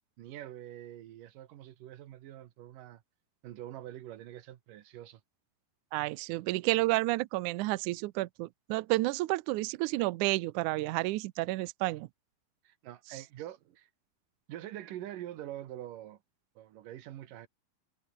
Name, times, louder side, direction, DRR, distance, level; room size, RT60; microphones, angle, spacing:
voice 1, 0.2-3.0 3.4-5.2 12.6-13.9 14.5-16.2 16.6-17.5, right 12 dB, 70° right, 2.9 m, -45 dB
voice 2, 5.9-12.1, right 20 dB, 85° right, 1.8 m, -30 dB
omnidirectional pair, 4.2 m